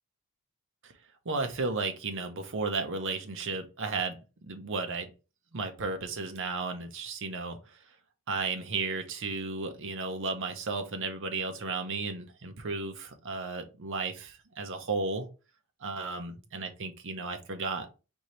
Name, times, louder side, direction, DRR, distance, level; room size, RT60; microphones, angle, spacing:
voice 1, 1.2-5.1 5.5-7.8 8.3-15.3 15.8-17.9, right 4 dB, 60° right, 6 dB, 0.8 m, -34 dB
4.5 x 2.8 x 3.2 m, 0.31 s
head